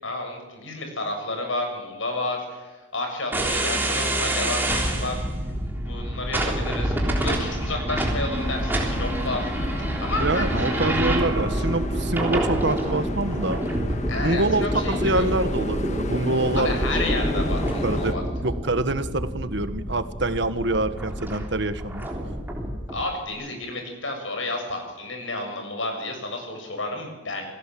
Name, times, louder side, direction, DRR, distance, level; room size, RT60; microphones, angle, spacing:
voice 1, 0.0-5.2 5.6-9.5 10.0-10.8 11.6-11.7 14.1-15.2 16.5-18.2 22.9-27.5, left 2 dB, 75° left, 4 dB, 7.0 m, -31 dB
sound 1, 3.3-23.0, right 1 dB, 10° right, 3.4 m, -27 dB
sound 2, 8.3-18.1, left 2 dB, 35° left, 1.7 m, -36 dB
voice 2, 10.2-13.6 14.2-16.7 17.8-18.2 18.4-22.1, right 2 dB, 60° right, 11 dB, 1.5 m, -25 dB
28.0 x 18.0 x 7.7 m, 1.2 s
head